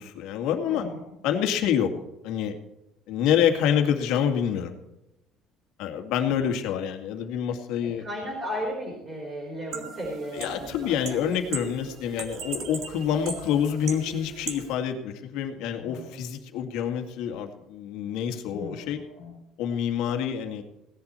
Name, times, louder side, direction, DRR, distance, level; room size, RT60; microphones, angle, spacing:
voice 1, 0.0-0.9 1.2-1.9 2.2-2.5 3.1-4.7 5.8-8.1 10.3-19.0 19.6-20.6, left 9 dB, 75° left, 5 dB, 2.1 m, -27 dB
voice 2, 0.7-1.1 6.3-6.5 7.8-11.4 15.8-16.2 18.5-19.3, equal, 20° right, -2 dB, 3.7 m, -36 dB
sound 1, 9.7-14.7, right 5 dB, 50° right, 2.0 m, -38 dB
17.5 x 10.5 x 4.3 m, 0.91 s
cardioid pair, 170°, 0 cm